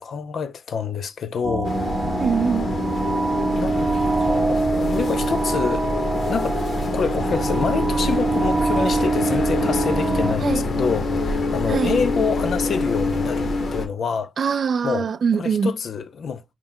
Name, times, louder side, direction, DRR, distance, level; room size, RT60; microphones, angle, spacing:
voice 1, 0.0-1.8 3.6-3.9 4.1-5.9 6.3-6.6 6.9-14.3 14.8-15.1 15.4-16.4, left 6 dB, 85° left, 0.4 m, -27 dB
sound 1, 1.4-10.3, right 3 dB, 25° right, 0.7 m, -24 dB
sound 2, 1.6-13.9, left 2 dB, 70° left, 0.7 m, -26 dB
voice 2, 2.2-2.7 10.4-10.6 11.7-12.0 14.4-15.7, right 6 dB, 65° right, 0.3 m, -22 dB
4.5 x 2.1 x 3.6 m
wide cardioid pair, 160°, 0 cm